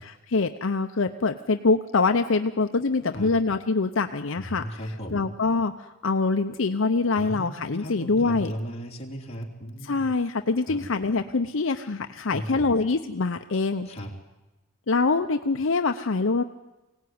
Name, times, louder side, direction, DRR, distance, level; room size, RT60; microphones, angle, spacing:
voice 1, 0.0-8.5 9.8-13.9 14.9-16.4, left 3 dB, 65° left, 7 dB, 0.7 m, -25 dB
voice 2, 4.4-5.3 7.2-7.5 7.8-10.1 10.7-10.8 12.3-12.7 13.9-14.1, equal, 30° left, -1 dB, 3.4 m, -36 dB
22.5 x 17.5 x 9.5 m, 1.1 s
head